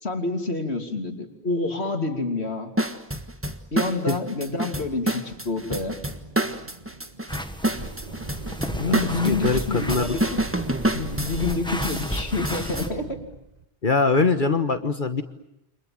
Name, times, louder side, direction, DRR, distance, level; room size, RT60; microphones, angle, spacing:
voice 1, 0.0-2.7 3.7-6.0 8.8-10.4 10.9-13.2, left 3 dB, 70° left, 5 dB, 3.4 m, -28 dB
sound 1, 2.8-12.9, right 1 dB, 10° right, 1.5 m, -28 dB
sound 2, 5.3-13.6, right 3 dB, 40° right, 1.7 m, -40 dB
sound 3, 7.3-12.9, equal, 5° left, 1.5 m, -34 dB
voice 2, 8.8-10.2 13.8-15.2, left 4 dB, 50° left, 8 dB, 1.5 m, -23 dB
29.5 x 26.0 x 7.8 m, 0.85 s
omnidirectional pair, 1.1 m